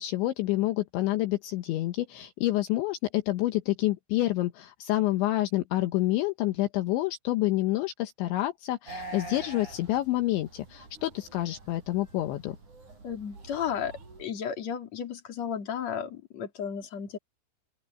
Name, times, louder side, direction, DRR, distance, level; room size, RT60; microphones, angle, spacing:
voice 1, 0.0-12.6, left 16 dB, 75° left, 3.3 m, -28 dB
sound 1, 8.9-14.2, right 2 dB, 40° right, 8.8 m, -46 dB
voice 2, 13.0-13.9 14.2-17.2, left 8 dB, 40° left, 3.8 m, -33 dB
open air
omnidirectional pair, 5.7 m